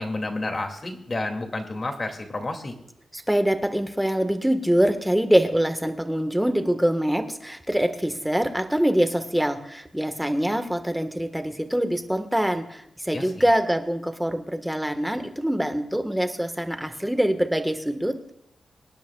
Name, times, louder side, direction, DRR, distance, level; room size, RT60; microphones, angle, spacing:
voice 1, 0.0-2.7 13.1-13.4, left 2 dB, 35° left, 3 dB, 2.2 m, -30 dB
voice 2, 3.1-18.2, equal, 5° right, 6 dB, 1.3 m, -24 dB
25.0 x 10.5 x 2.3 m, 0.78 s
wide cardioid pair, 105°, 0 cm